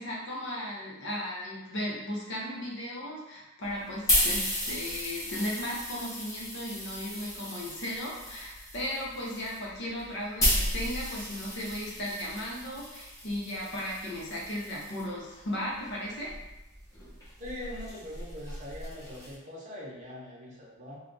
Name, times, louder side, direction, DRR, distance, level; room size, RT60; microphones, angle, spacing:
voice 1, 0.0-16.3, left 1 dB, 55° left, -4 dB, 0.7 m, -36 dB
sound 1, 3.7-15.0 15.8-19.4, equal, 15° left, 0.8 m, -34 dB
voice 2, 17.4-21.0, left 1 dB, 35° right, -6 dB, 0.8 m, -42 dB
2.3 x 2.2 x 3.8 m, 0.96 s
head